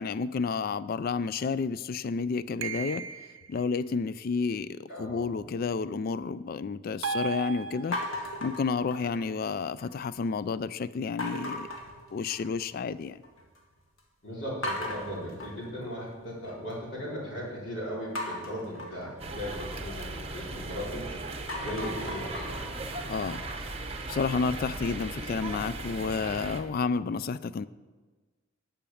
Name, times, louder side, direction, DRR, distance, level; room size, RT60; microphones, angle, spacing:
voice 1, 0.0-3.1 3.5-8.0 8.4-11.7 12.1-13.2 23.1-23.4 24.1-27.7, left 5 dB, 45° left, 16 dB, 0.3 m, -31 dB
sound 1, 2.6-3.5 7.0-8.3, right 5 dB, 70° right, 0.6 m, -35 dB
voice 2, 4.9-5.3 14.2-21.1 21.5-22.7, equal, 65° left, -6 dB, 3.8 m, -37 dB
sound 2, 7.9-9.4 9.8-10.3 11.2-12.7 13.0-13.6 14.0-14.1 14.6-16.7 18.1-20.9 21.3-24.2, left 1 dB, 80° left, 1.7 m, -39 dB
sound 3, 19.2-26.6, right 2 dB, 30° right, 0.8 m, -37 dB
10.0 x 5.9 x 7.0 m, 1.3 s
head